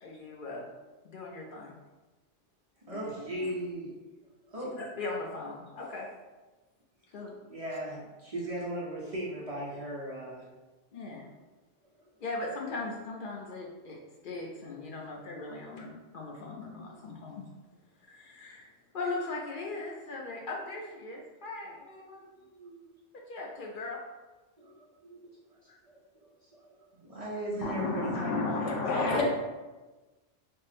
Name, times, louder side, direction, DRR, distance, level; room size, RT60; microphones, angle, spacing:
voice 1, 0.0-0.7 1.0-1.7 2.9-3.5 4.6-6.1 7.1-7.3 10.9-11.3 12.2-14.0 14.2-17.4 18.1-22.2 23.3-24.0, left 3 dB, 55° left, -2 dB, 0.6 m, -39 dB
voice 2, 2.9-3.9 4.4-4.8 7.5-10.5 11.2-11.3 16.7-17.1 19.7-19.8 22.2-22.9 24.6-25.2 25.9-28.3 29.0-29.2, right 1 dB, 35° right, -6 dB, 0.7 m, -38 dB
voice 3, 27.6-29.2, left 3 dB, 85° left, 1 dB, 1.0 m, -30 dB
3.5 x 2.0 x 4.1 m, 1.2 s
omnidirectional pair, 1.2 m